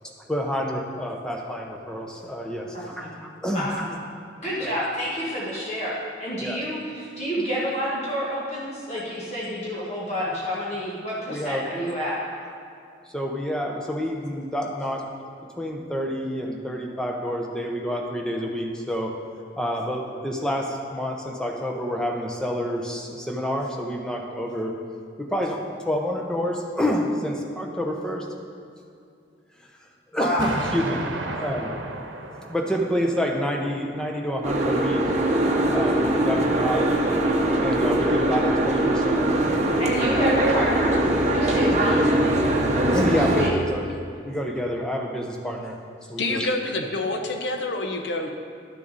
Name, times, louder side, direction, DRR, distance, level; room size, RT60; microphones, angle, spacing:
voice 1, 0.0-3.9 4.6-4.8 6.4-6.7 11.3-11.7 13.1-15.1 15.6-24.7 25.2-28.3 29.6-29.7 30.1-31.0 31.3-31.8 32.5-35.0 35.7-36.9 37.6-39.7 41.1-41.3 42.9-43.9 44.2-45.8 46.1-46.6, equal, 5° left, 0 dB, 0.8 m, -28 dB
voice 2, 2.7-3.1 3.5-3.9 4.4-5.9 6.2-12.2 30.1-30.5 39.8-40.9 41.3-42.0 43.0-43.6, equal, 35° left, -7 dB, 1.4 m, -29 dB
Explosion, 30.4-33.4, right 2 dB, 85° right, 0.9 m, -32 dB
Boat Water vehicle, 34.4-43.5, right 1 dB, 40° right, 0.9 m, -21 dB
voice 3, 46.2-48.3, left 2 dB, 70° left, 4 dB, 0.8 m, -27 dB
11.5 x 6.5 x 4.0 m, 2.4 s
head